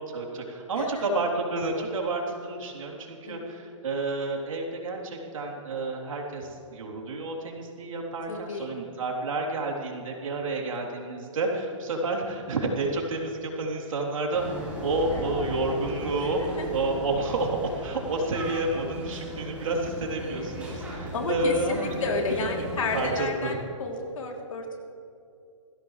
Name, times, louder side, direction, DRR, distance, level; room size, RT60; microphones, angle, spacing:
voice 1, 0.1-21.9 22.4-23.5, right 2 dB, 80° right, -1 dB, 3.7 m, -30 dB
voice 2, 3.2-3.6 8.3-8.8 15.0-15.2 16.2-16.7 21.1-24.8, left 3 dB, 85° left, 1 dB, 3.3 m, -32 dB
sound 1, 14.3-23.1, equal, 5° right, 4.3 m, -36 dB
21.0 x 16.0 x 3.4 m, 2.7 s
hypercardioid pair, 155°, 17 cm